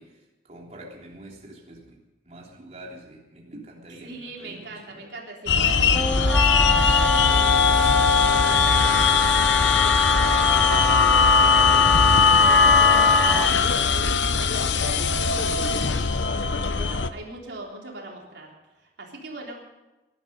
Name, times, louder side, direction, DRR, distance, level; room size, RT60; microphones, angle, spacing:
voice 1, 0.0-5.1, right 1 dB, 35° right, -1 dB, 3.4 m, -45 dB
voice 2, 4.0-9.1 9.4-15.1 15.6-16.3 16.7-18.5 18.8-19.5, right 2 dB, 75° right, -1 dB, 3.6 m, -40 dB
sound 1, 5.5-17.1, left 5 dB, 80° left, 0.9 m, -20 dB
Wind instrument woodwind instrument, 5.9-13.5, left 3 dB, 5° left, 0.6 m, -24 dB
20.0 x 12.0 x 5.3 m, 1.1 s
head